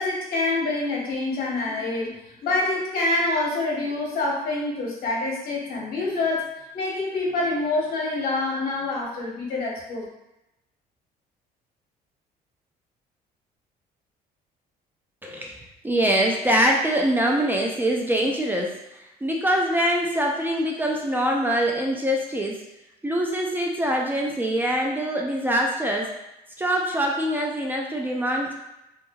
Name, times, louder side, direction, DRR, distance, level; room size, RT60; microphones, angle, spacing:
voice 1, 0.0-6.5 6.7-10.0, left 2 dB, 60° left, -3 dB, 1.0 m, -26 dB
voice 2, 15.2-15.6 15.8-18.8 19.2-22.6 23.0-26.1 26.6-28.5, equal, 10° right, -1 dB, 0.3 m, -24 dB
3.0 x 2.3 x 2.2 m, 0.90 s
cardioid pair, 110°, 17 cm